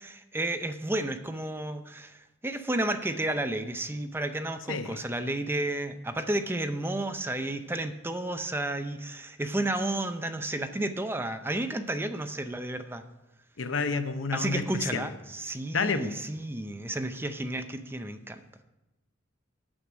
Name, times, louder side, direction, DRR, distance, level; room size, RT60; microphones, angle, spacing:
voice 1, 0.0-13.0 14.3-18.4, right 1 dB, 10° right, 8 dB, 0.6 m, -32 dB
voice 2, 4.7-5.0 13.6-15.1 15.7-16.2, left 4 dB, 75° left, 9 dB, 0.8 m, -30 dB
8.7 x 7.7 x 6.2 m, 0.97 s
head